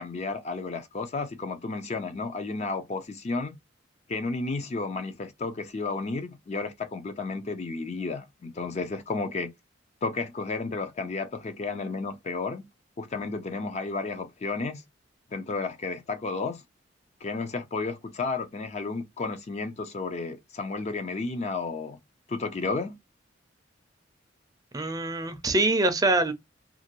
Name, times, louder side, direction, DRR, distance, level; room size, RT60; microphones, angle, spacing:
voice 1, 0.0-3.6 4.1-9.5 10.0-12.6 13.0-14.8 15.3-16.6 17.2-22.0 22.3-23.0, left 3 dB, 35° left, 0.4 m, -32 dB
voice 2, 24.7-26.3, right 2 dB, 20° right, 0.5 m, -24 dB
2.5 x 2.5 x 2.9 m
head